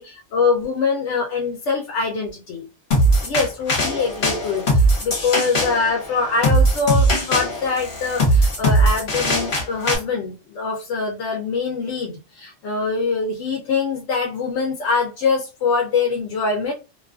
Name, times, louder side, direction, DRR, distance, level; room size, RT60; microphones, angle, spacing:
voice 1, 0.0-2.7 3.2-16.7, left 4 dB, 80° left, 1 dB, 0.9 m, -23 dB
sound 1, 2.9-10.0, right 1 dB, 50° left, 0.9 m, -20 dB
2.5 x 2.3 x 2.3 m, 0.30 s
omnidirectional pair, 1.2 m